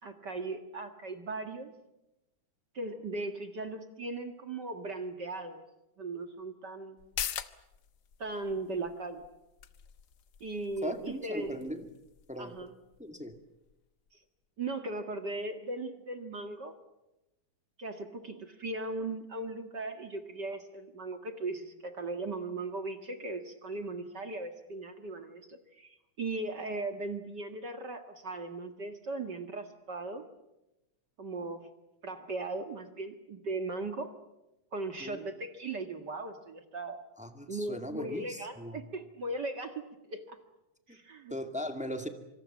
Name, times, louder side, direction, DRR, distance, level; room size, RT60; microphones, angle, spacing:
voice 1, 0.0-1.7 2.7-5.6 6.0-7.0 8.2-9.2 10.4-11.6 12.4-12.7 14.6-16.7 17.8-30.2 31.2-31.7 32.0-34.1 34.7-37.0 37.5-39.8 40.1-40.4 40.9-41.4, right 2 dB, 40° right, 7 dB, 2.0 m, -38 dB
sound 1, 7.0-14.1 14.4-14.5, left 9 dB, 85° left, 0.9 m, -44 dB
voice 2, 10.8-11.9 12.3-12.5 13.0-13.4 35.0-35.2 37.2-38.9 40.9-41.0 41.3-42.1, left 1 dB, 5° right, 6 dB, 1.6 m, -38 dB
26.0 x 25.5 x 7.3 m, 0.94 s
omnidirectional pair, 3.5 m